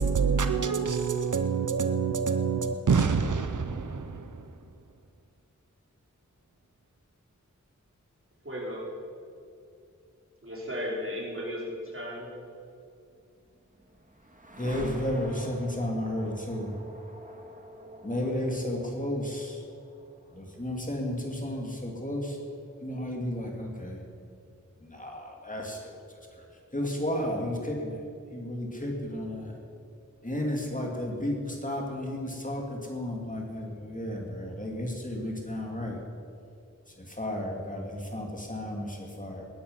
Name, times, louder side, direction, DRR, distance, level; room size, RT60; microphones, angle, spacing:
voice 1, 0.0-4.4, right 5 dB, 80° right, 0.7 m, -26 dB
voice 2, 8.4-8.9 10.4-12.4, equal, 45° right, 4.1 m, -35 dB
sound 1, 13.2-23.2, right 1 dB, 25° right, 1.9 m, -46 dB
voice 3, 14.6-16.8 18.0-19.6 20.3-22.4 22.8-24.0 24.8-26.5 26.7-28.0 28.3-29.6 30.2-36.0 36.9-39.4, left 1 dB, 25° left, 2.9 m, -33 dB
19.5 x 11.0 x 5.8 m
wide cardioid pair, 60°, 30 cm